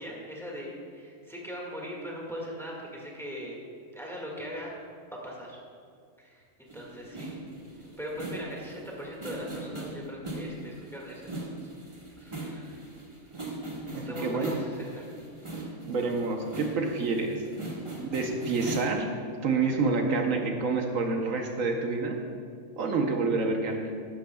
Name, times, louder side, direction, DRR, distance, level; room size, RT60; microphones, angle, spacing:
voice 1, 0.0-3.6 3.9-4.8 5.2-5.6 6.2-7.5 8.0-11.7 12.2-12.8 14.1-15.1, equal, ahead, -3 dB, 1.7 m, -40 dB
sound 1, 6.7-18.9, right 2 dB, 25° right, 1.4 m, -40 dB
voice 2, 13.9-14.6 15.9-17.4 18.0-22.2 22.8-24.0, right 3 dB, 75° right, 3 dB, 1.2 m, -28 dB
13.0 x 11.5 x 2.3 m, 2.2 s
omnidirectional pair, 1.4 m